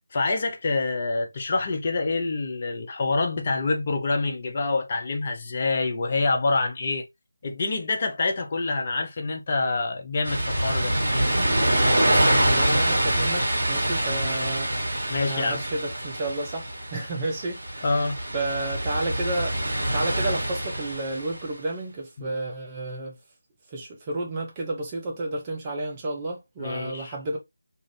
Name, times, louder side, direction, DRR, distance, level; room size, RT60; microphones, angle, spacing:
voice 1, 0.0-7.1 7.4-10.9 15.1-15.6 17.8-18.2 22.2-22.3 26.6-27.1, left 3 dB, 30° left, 0.5 m, -26 dB
sound 1, 10.2-21.4, right 1 dB, 45° right, 1.2 m, -25 dB
voice 2, 11.6-19.6 19.9-23.2 23.7-27.4, right 2 dB, 15° right, 0.6 m, -32 dB
2.5 x 2.4 x 3.0 m
figure-of-eight pair, 160°, 0 cm